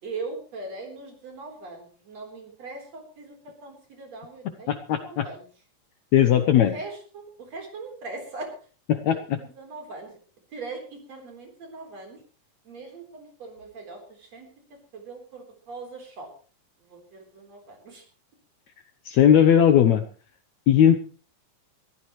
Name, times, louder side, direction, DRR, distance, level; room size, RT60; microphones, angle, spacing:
voice 1, 0.0-5.5 6.3-8.7 9.1-10.2 10.5-12.2 12.6-14.5 14.9-16.3 16.8-18.1, right 3 dB, 50° right, 3 dB, 5.0 m, -40 dB
voice 2, 4.7-5.2 6.1-6.7 8.9-9.4 19.1-20.0 20.7-21.0, left 9 dB, 70° left, 8 dB, 1.9 m, -18 dB
22.0 x 14.5 x 3.2 m, 0.38 s
omnidirectional pair, 4.0 m